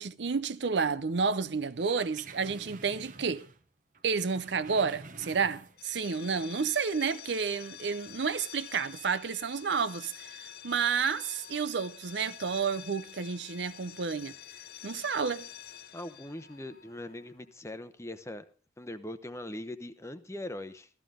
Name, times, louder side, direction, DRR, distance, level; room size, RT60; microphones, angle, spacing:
voice 1, 0.0-3.5 4.0-14.4 14.8-15.5, right 5 dB, 70° right, 0.6 m, -31 dB
sound 1, 1.7-3.7 3.9-6.0 6.3-6.4, right 3 dB, 45° right, 1.1 m, -49 dB
sound 2, 5.7-17.4, left 10 dB, 55° left, 0.7 m, -48 dB
voice 2, 15.9-18.4 18.8-20.9, left 1 dB, 15° left, 0.8 m, -41 dB
14.0 x 14.0 x 3.7 m
head